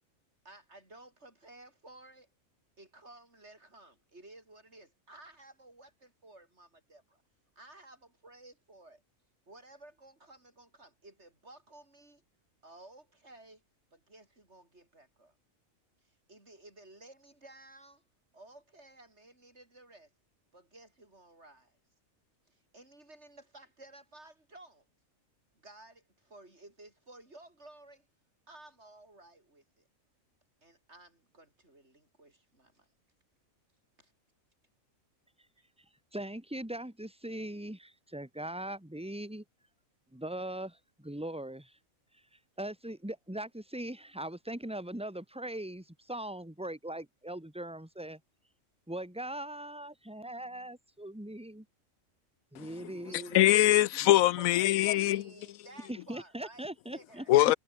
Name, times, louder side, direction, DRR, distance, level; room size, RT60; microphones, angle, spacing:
voice 1, 0.4-2.3 2.8-7.2 7.6-9.0 9.5-12.2 12.6-13.6 13.9-15.3 16.0-18.0 18.3-20.1 20.5-21.8 22.5-24.8 25.5-28.1 28.5-29.8 30.6-32.9 34.0-34.1 52.8-53.5 54.4-57.3, right 2 dB, 55° right, 6.5 m, -55 dB
voice 2, 36.1-39.4 40.1-41.8 42.6-48.2 48.9-51.6 52.5-53.5 55.9-57.2, right 1 dB, 5° right, 2.9 m, -40 dB
voice 3, 53.3-55.2 57.3-57.5, left 15 dB, 80° left, 1.0 m, -22 dB
omnidirectional pair, 1.4 m